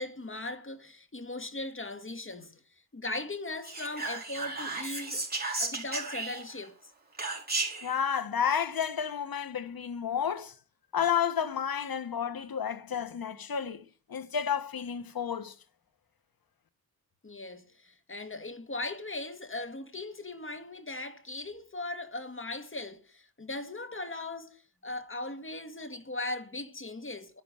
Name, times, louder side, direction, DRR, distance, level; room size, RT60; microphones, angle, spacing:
voice 1, 0.0-2.6 2.9-5.3 5.6-6.8 17.2-27.4, left 2 dB, 35° left, 2.0 m, -39 dB
Whispering, 3.6-6.6 7.2-7.9, right 3 dB, 25° right, 5.2 m, -34 dB
voice 2, 7.8-10.5 10.9-13.8 14.1-15.5, left 8 dB, 70° left, 1.5 m, -31 dB
13.0 x 11.5 x 6.6 m
cardioid pair, 70°, 37 cm